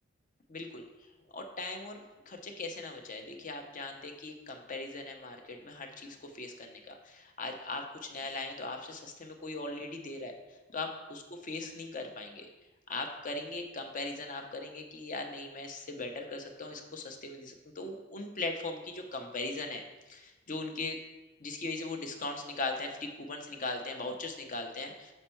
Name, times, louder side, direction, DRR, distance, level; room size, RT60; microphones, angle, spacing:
voice 1, 0.5-0.8 1.3-10.3 10.7-11.2 11.5-12.5 12.9-21.0 21.4-25.1, left 3 dB, 40° left, 4 dB, 0.7 m, -39 dB
6.5 x 4.4 x 4.4 m, 1.1 s
head